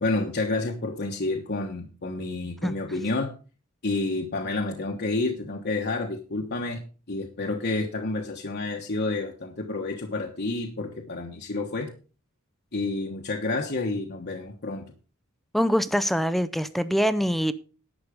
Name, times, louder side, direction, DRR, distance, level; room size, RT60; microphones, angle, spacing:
voice 1, 0.0-3.3 3.8-6.8 7.1-11.9 12.7-14.8, left 2 dB, 50° left, 1.2 m, -29 dB
voice 2, 15.5-17.5, equal, ahead, 0.5 m, -24 dB
11.5 x 8.2 x 5.1 m
head